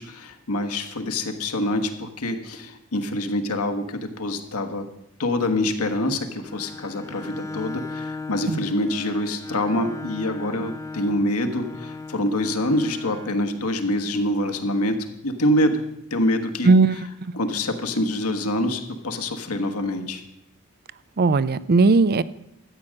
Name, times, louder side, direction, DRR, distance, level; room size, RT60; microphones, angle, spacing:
voice 1, 0.0-4.8 5.2-15.0 15.2-15.8 16.1-16.7 17.3-20.2, left 1 dB, 75° left, 6 dB, 1.4 m, -25 dB
Bowed string instrument, 6.3-13.4, left 3 dB, 15° left, 0.7 m, -37 dB
voice 2, 16.6-17.0 21.2-22.2, right 3 dB, 45° right, 18 dB, 0.5 m, -17 dB
13.0 x 8.7 x 6.4 m, 0.82 s
head